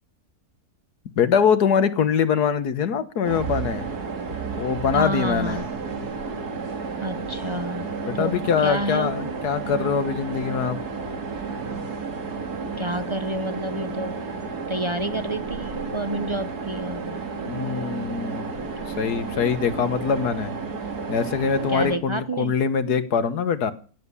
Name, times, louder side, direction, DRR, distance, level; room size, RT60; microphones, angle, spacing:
voice 1, 1.2-3.9 4.6-5.6 8.1-10.8 17.5-18.7 19.0-20.5 21.1-23.7, left 6 dB, 85° left, 12 dB, 1.8 m, -23 dB
sound 1, 3.2-22.0, right 4 dB, 85° right, 2.4 m, -32 dB
voice 2, 4.9-5.7 7.0-9.4 12.8-14.2 14.7-17.2 21.7-22.6, right 1 dB, 35° right, 12 dB, 0.4 m, -29 dB
16.0 x 8.0 x 9.7 m, 0.40 s
omnidirectional pair, 1.6 m